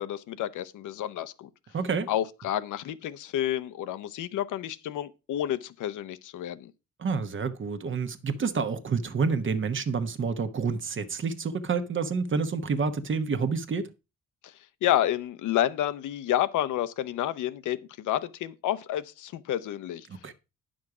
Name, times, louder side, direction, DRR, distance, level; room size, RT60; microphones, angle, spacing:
voice 1, 0.0-1.5 2.1-6.7 14.4-14.5 14.8-20.1, left 12 dB, 80° left, 0.9 m, -30 dB
voice 2, 1.7-2.1 7.0-13.8 20.2-20.3, right 5 dB, 40° right, 1.2 m, -28 dB
9.6 x 6.4 x 4.9 m
cardioid pair, 90°, 30 cm